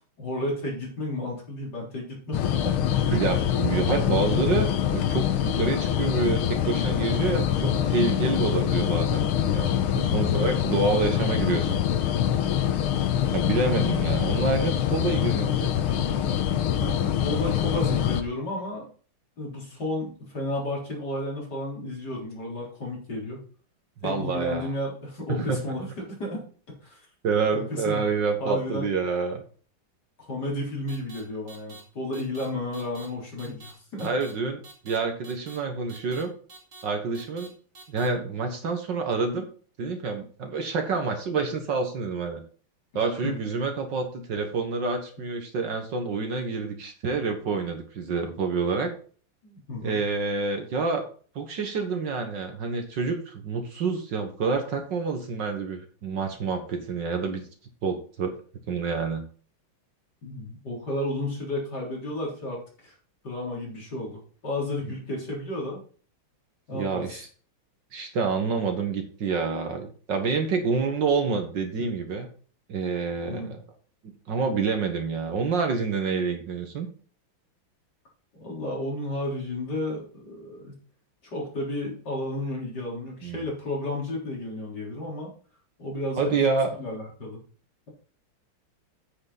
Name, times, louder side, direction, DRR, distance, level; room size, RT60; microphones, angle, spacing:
voice 1, 0.2-3.1 10.0-10.4 16.8-18.9 19.4-23.4 24.0-27.1 27.5-28.1 28.4-28.9 30.3-34.1 43.2-43.4 49.4-50.0 60.2-63.0 63.2-65.8 66.7-67.2 73.3-73.5 78.4-80.8 81.2-85.3 85.8-86.5 86.8-87.4, left 1 dB, 50° left, -3 dB, 4.2 m, -32 dB
sound 1, 2.3-18.2, left 10 dB, 80° left, 1.7 m, -25 dB
voice 2, 3.1-9.3 9.5-11.8 13.3-15.7 24.0-24.7 25.3-25.6 27.2-29.4 34.0-36.3 36.8-37.5 37.9-39.5 39.8-42.4 43.0-48.9 49.8-51.1 51.4-57.4 57.8-58.3 58.7-59.2 66.7-67.3 67.9-72.3 72.7-73.6 74.3-76.9 83.2-83.5 86.2-86.7, right 4 dB, 60° right, 5 dB, 1.9 m, -27 dB
sound 2, 30.9-31.2 31.5-31.8 32.1-32.5 32.7-33.1 33.4-33.7 34.0-34.3 34.6-35.0 35.2-35.6 35.9-36.2 36.5-36.8 37.1-37.5 37.7-38.1, right 3 dB, 35° right, 2.8 m, -46 dB
8.7 x 8.5 x 4.0 m, 0.42 s
omnidirectional pair, 2.4 m